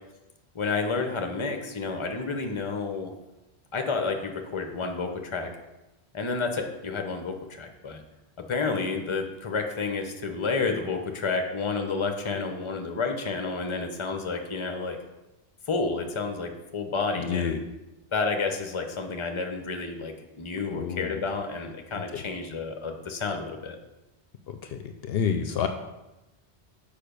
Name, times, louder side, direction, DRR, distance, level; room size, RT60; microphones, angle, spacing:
voice 1, 0.5-3.1 3.7-5.5 6.1-8.0 8.4-15.0 15.7-17.5 18.1-23.8, left 4 dB, 30° left, 5 dB, 0.8 m, -30 dB
voice 2, 17.2-17.6 20.7-21.3 22.1-22.2 24.5-25.7, left 7 dB, 70° left, 7 dB, 0.8 m, -29 dB
6.7 x 5.3 x 5.2 m, 1.0 s
omnidirectional pair, 1.1 m